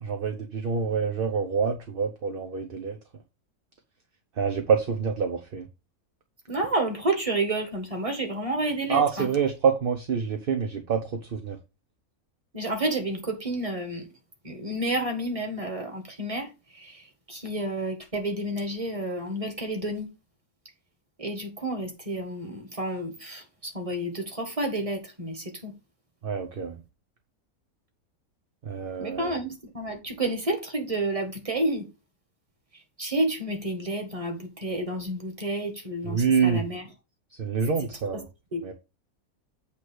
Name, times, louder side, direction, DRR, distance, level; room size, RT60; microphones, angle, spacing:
voice 1, 0.0-3.0 4.4-5.6 8.9-11.6 26.2-26.7 28.7-29.3 36.1-36.7 37.4-38.2 38.6-38.7, right 6 dB, 45° right, 0.9 m, -26 dB
voice 2, 6.5-9.3 12.5-14.0 14.4-16.5 16.7-20.1 21.2-25.7 29.0-31.9 33.0-36.8 38.5-38.6, right 1 dB, 25° right, 1.8 m, -30 dB
8.4 x 3.2 x 6.2 m
omnidirectional pair, 1.5 m